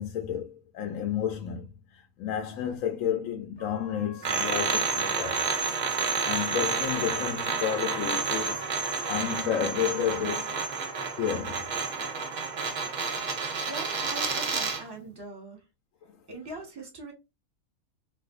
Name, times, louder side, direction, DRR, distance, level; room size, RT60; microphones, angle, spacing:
voice 1, 0.0-1.7 1.9-5.4 6.2-8.7 9.1-10.6 11.2-11.7 16.0-16.1, left 9 dB, 70° left, 0.9 m, -31 dB
Trumpet, 3.6-9.8, left 2 dB, 30° left, 0.5 m, -48 dB
sound 1, 4.2-14.9, right 5 dB, 55° right, 0.5 m, -30 dB
voice 2, 13.7-15.6 16.3-17.1, right 2 dB, 20° right, 1.0 m, -41 dB
2.6 x 2.5 x 3.6 m
omnidirectional pair, 1.5 m